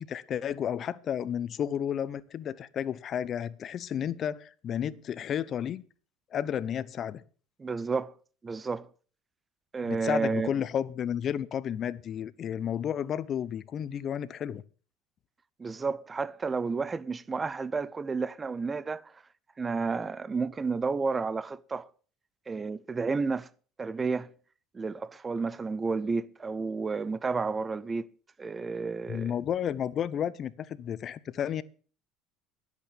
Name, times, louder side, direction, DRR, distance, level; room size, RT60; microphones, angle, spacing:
voice 1, 0.0-5.8 6.3-7.2 9.8-14.6 29.1-31.6, left 9 dB, 40° left, 0.7 m, -32 dB
voice 2, 7.6-8.1 8.4-8.9 9.7-10.5 15.6-19.1 19.6-21.9 22.5-23.5 23.8-24.3 24.7-28.1 28.4-29.3, right 4 dB, 20° right, 0.5 m, -31 dB
10.5 x 8.3 x 7.2 m
supercardioid pair, 120°, 0 cm